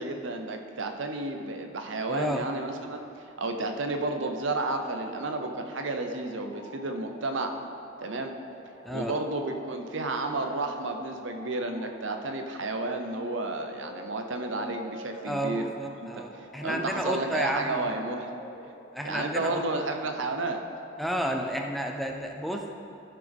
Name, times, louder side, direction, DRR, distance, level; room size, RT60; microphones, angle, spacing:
voice 1, 0.0-7.6 8.0-8.3 8.9-15.6 16.0-16.1 16.3-18.3 19.0-20.6, right 2 dB, 75° right, 5 dB, 0.8 m, -32 dB
voice 2, 2.1-2.4 8.8-9.1 15.2-17.9 18.9-19.6 21.0-22.8, equal, ahead, 2 dB, 0.5 m, -31 dB
sound 1, 4.2-21.1, equal, 50° left, 1.4 m, -48 dB
13.5 x 6.0 x 3.5 m, 2.6 s
head